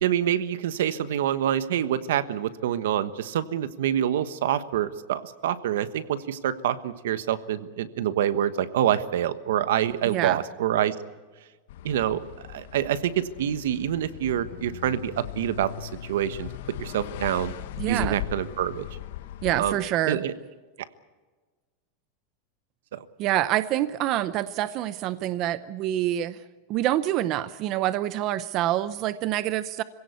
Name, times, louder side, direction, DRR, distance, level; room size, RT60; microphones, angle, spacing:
voice 1, 0.0-10.9 11.8-16.5 16.8-17.5 17.9-18.9 19.5-19.8 20.1-20.3 22.9-23.0, right 10 dB, 80° right, 13 dB, 1.2 m, -26 dB
voice 2, 10.1-10.4 17.8-18.2 19.4-20.2 23.2-26.4 26.7-29.8, right 13 dB, 35° right, 15 dB, 0.6 m, -26 dB
sound 1, 11.7-19.8, left 12 dB, 65° left, 1.1 m, -38 dB
25.5 x 17.0 x 8.3 m, 1.3 s
supercardioid pair, 165°, 0 cm